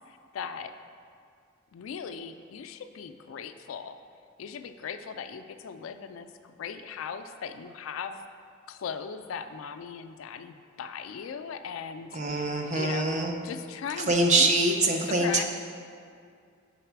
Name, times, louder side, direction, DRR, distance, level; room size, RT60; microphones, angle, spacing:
voice 1, 0.1-0.7 1.7-4.0 4.4-8.2 8.7-12.5 12.7-13.1 13.4-14.5 15.1-15.4, left 6 dB, 85° left, 9 dB, 0.4 m, -38 dB
voice 2, 12.1-13.3 14.0-15.4, right 2 dB, 35° right, 2 dB, 0.6 m, -24 dB
6.6 x 4.0 x 4.6 m, 2.3 s
head